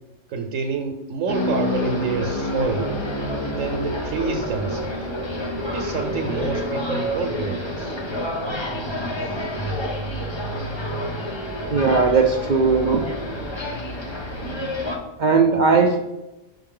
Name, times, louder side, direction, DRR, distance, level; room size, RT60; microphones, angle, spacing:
voice 1, 0.3-2.9 3.5-5.1 5.6-7.9, right 4 dB, 85° right, 2 dB, 1.1 m, -28 dB
sound 1, 1.3-15.0, left 1 dB, 25° left, 0.7 m, -28 dB
voice 2, 11.7-13.0 15.2-16.0, right 4 dB, 65° right, 4 dB, 0.4 m, -18 dB
5.7 x 5.4 x 3.7 m, 0.97 s
omnidirectional pair, 1.3 m